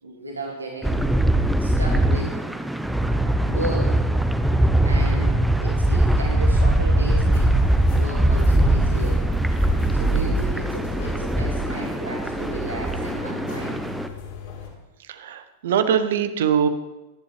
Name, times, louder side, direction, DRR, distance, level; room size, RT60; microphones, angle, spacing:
voice 1, 0.0-1.1 1.6-2.4 3.4-4.0 4.8-9.3 9.9-13.9, right 2 dB, 80° right, 0 dB, 2.2 m, -34 dB
sound 1, 0.8-14.1, right 1 dB, 5° right, 0.8 m, -21 dB
sound 2, 7.3-14.7, left 6 dB, 50° left, 3.5 m, -38 dB
voice 2, 15.0-16.7, right 8 dB, 60° right, 10 dB, 1.1 m, -22 dB
23.0 x 11.0 x 3.3 m, 1.1 s
figure-of-eight pair, 90°, 0 cm